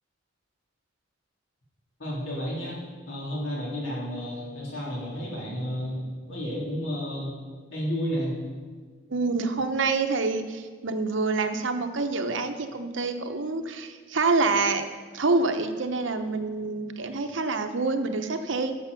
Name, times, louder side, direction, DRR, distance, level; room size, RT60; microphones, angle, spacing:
voice 1, 2.0-2.8 3.1-7.3 7.7-8.4, equal, 75° left, -5 dB, 3.4 m, -31 dB
voice 2, 9.1-14.8 15.1-18.8, right 3 dB, 70° right, 7 dB, 0.9 m, -27 dB
10.5 x 7.0 x 6.9 m, 1.5 s
head